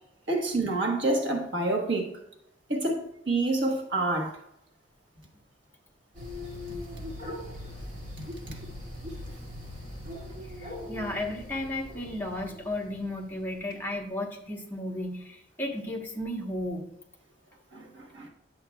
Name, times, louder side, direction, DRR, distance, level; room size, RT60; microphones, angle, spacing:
voice 1, 0.3-2.1 2.7-4.3 8.2-8.6 17.7-18.3, right 2 dB, 85° right, 1.4 m, -28 dB
sound 1, 6.1-13.8, left 1 dB, 45° right, 2.5 m, -41 dB
voice 2, 10.5-16.9, left 1 dB, 10° left, 1.2 m, -34 dB
9.8 x 7.7 x 2.3 m
head